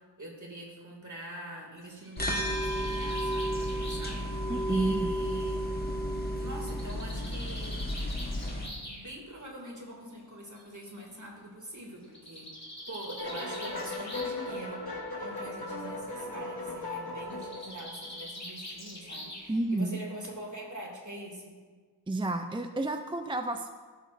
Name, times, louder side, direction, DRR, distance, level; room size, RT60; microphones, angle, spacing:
voice 1, 0.2-5.7 6.4-7.8 8.9-12.5 12.9-14.9 15.2-21.6, right 1 dB, 45° right, -2 dB, 2.2 m, -44 dB
Bird, 1.8-5.6 6.7-9.0 10.1-10.2 10.6-10.7 10.9-11.0 12.0-14.4 14.7-15.2 17.3-19.7, left 1 dB, 40° left, 2.3 m, -44 dB
sound 1, 2.2-8.7, equal, 20° left, 1.2 m, -32 dB
voice 2, 4.5-5.1 19.5-20.0 22.1-23.7, right 2 dB, 15° right, 6 dB, 0.3 m, -30 dB
sound 2, 13.2-18.2, left 2 dB, 60° left, 1.9 m, -37 dB
15.0 x 6.7 x 2.5 m, 1.5 s
wide cardioid pair, 45°, 42 cm